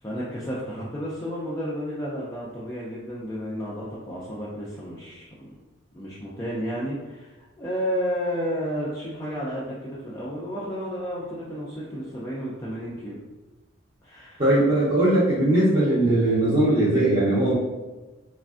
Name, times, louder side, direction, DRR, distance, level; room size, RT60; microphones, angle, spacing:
voice 1, 0.0-5.5 5.9-13.2 14.0-14.4, equal, 15° left, -8 dB, 0.3 m, -32 dB
voice 2, 14.4-17.5, right 1 dB, 30° right, -11 dB, 0.6 m, -20 dB
3.2 x 2.4 x 2.4 m, 1.2 s
head